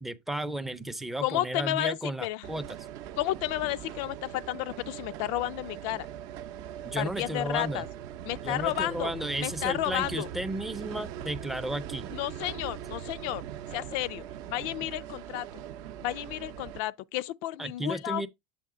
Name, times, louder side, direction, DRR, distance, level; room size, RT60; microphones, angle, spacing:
voice 1, 0.0-2.6 6.8-7.9 8.4-12.1 17.6-18.3, right 1 dB, 5° right, 0.5 m, -33 dB
voice 2, 1.2-2.0 2.2-2.5 3.2-6.1 7.0-7.9 8.3-9.1 9.4-10.3 12.1-13.4 13.7-15.6 16.0-18.3, left 15 dB, 60° left, 0.3 m, -32 dB
sound 1, 2.4-16.8, right 10 dB, 55° right, 0.6 m, -41 dB
7.7 x 3.2 x 4.8 m
supercardioid pair, 160°, 5 cm